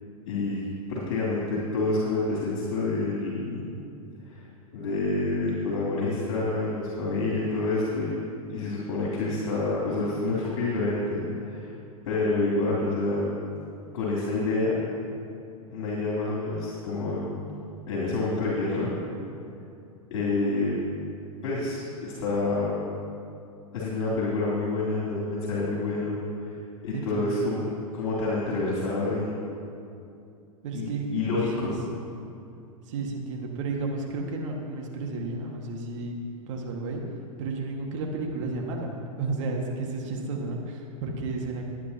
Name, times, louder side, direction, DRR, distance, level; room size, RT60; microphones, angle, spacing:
voice 1, 0.3-0.6 0.9-3.7 4.3-4.4 4.7-8.1 8.5-11.7 12.0-13.3 13.9-14.8 15.7-17.3 17.9-19.0 20.1-20.7 21.4-22.8 23.7-26.2 26.4-26.6 26.8-27.7 27.9-29.3 30.7-31.8, left 2 dB, 55° left, -6 dB, 3.3 m, -28 dB
voice 2, 26.9-27.4 30.6-31.7 32.9-36.2 36.5-37.0 37.4-41.6, right 3 dB, 55° right, 0 dB, 1.9 m, -32 dB
22.0 x 9.5 x 2.9 m, 2.5 s
figure-of-eight pair, 100°, 19 cm